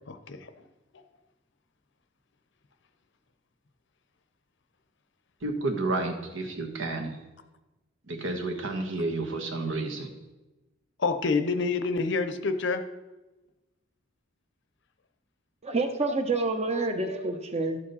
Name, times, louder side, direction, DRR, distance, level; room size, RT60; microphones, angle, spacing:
voice 1, 0.1-0.5 11.0-12.8, left 4 dB, 60° left, 9 dB, 0.7 m, -27 dB
voice 2, 5.4-7.2 8.1-10.1, right 2 dB, 70° right, 3 dB, 1.4 m, -31 dB
voice 3, 15.6-17.8, right 3 dB, 30° right, 5 dB, 1.0 m, -28 dB
12.0 x 7.4 x 4.2 m, 1.1 s
head